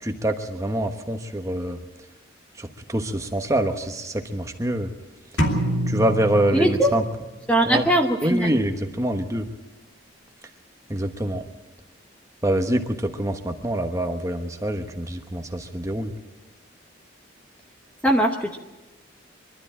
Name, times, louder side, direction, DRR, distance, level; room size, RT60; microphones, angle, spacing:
voice 1, 0.0-1.8 2.6-4.9 5.9-7.0 7.7-7.8 8.2-9.5 10.9-11.4 12.4-16.1, right 1 dB, 15° right, 5 dB, 1.2 m, -25 dB
sound 1, 5.4-7.3, equal, 70° left, 2.6 m, -26 dB
voice 2, 6.5-6.9 7.5-8.6 18.0-18.6, right 1 dB, 5° left, 2 dB, 0.9 m, -20 dB
23.0 x 12.5 x 8.8 m, 1.1 s
head